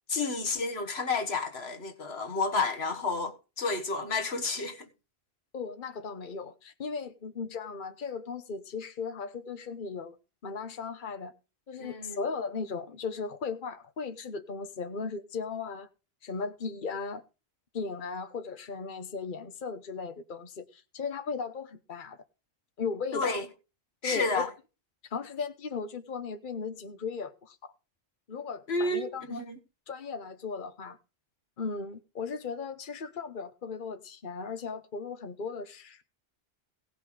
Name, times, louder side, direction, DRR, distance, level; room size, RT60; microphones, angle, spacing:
voice 1, 0.1-4.9 11.8-12.2 23.1-23.5 24.0-24.5 28.7-29.6, left 3 dB, 80° left, 1.8 m, -31 dB
voice 2, 5.5-10.2 10.4-11.3 11.7-15.9 16.2-17.2 17.7-22.2 22.8-23.4 24.0-24.5 25.0-27.6 28.3-29.4 29.9-31.0 31.6-36.0, left 5 dB, 55° left, 1.2 m, -37 dB
17.5 x 5.9 x 4.9 m
omnidirectional pair, 1.1 m